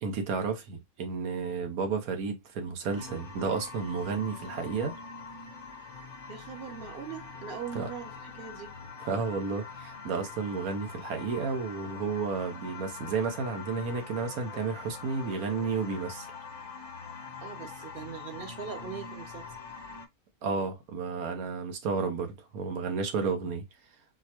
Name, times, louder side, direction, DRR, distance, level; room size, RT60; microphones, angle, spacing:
voice 1, 0.0-4.9 7.7-7.9 9.0-16.3 20.4-23.6, right 5 dB, 80° right, 1.3 m, -32 dB
sound 1, 2.9-20.1, left 5 dB, 60° left, 1.1 m, -44 dB
voice 2, 6.3-8.7 17.4-19.5, right 7 dB, 50° right, 0.8 m, -41 dB
4.4 x 2.1 x 2.9 m
omnidirectional pair, 1.5 m